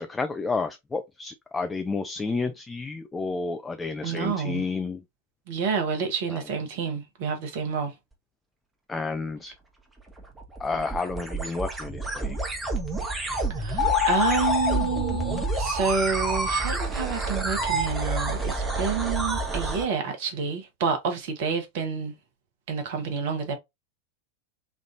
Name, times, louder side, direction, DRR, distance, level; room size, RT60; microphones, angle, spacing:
voice 1, 0.0-5.0 6.3-6.4 8.9-9.5 10.6-12.4, left 4 dB, 15° left, 0.3 m, -31 dB
voice 2, 4.0-4.6 5.5-7.9 13.5-22.1 22.7-23.6, right 5 dB, 50° right, 0.9 m, -29 dB
sound 1, 10.0-19.9, right 2 dB, 10° right, 0.8 m, -29 dB
sound 2, 13.8-16.2, left 10 dB, 55° left, 1.0 m, -27 dB
3.2 x 2.5 x 2.5 m
figure-of-eight pair, 90°, 0 cm